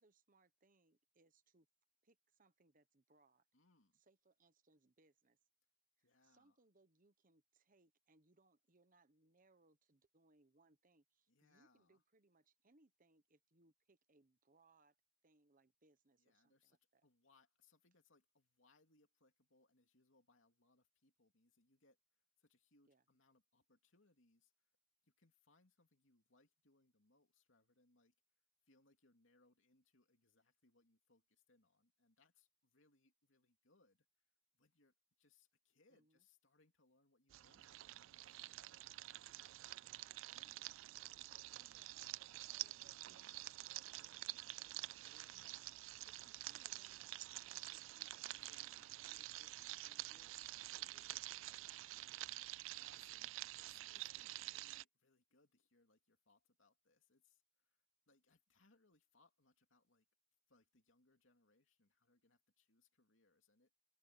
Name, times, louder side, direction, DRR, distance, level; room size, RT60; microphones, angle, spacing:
voice 1, 0.0-1.7 2.0-3.5 3.9-5.4 6.0-15.0 15.2-17.1 22.9-23.0 35.9-36.3 40.0-40.8 41.5-52.1, right 2 dB, 40° right, 1.2 m, -74 dB
voice 2, 3.5-4.0 6.0-6.6 11.3-12.0 16.2-24.7 25.0-28.1 28.6-34.3 34.5-38.4 41.2-41.5 43.0-43.4 45.3-45.8 48.4-48.9 50.9-51.2 52.7-60.1 60.5-63.7, left 3 dB, 70° left, 3.0 m, -75 dB
sound 1, 37.3-54.8, right 17 dB, 70° right, 0.3 m, -49 dB
open air
head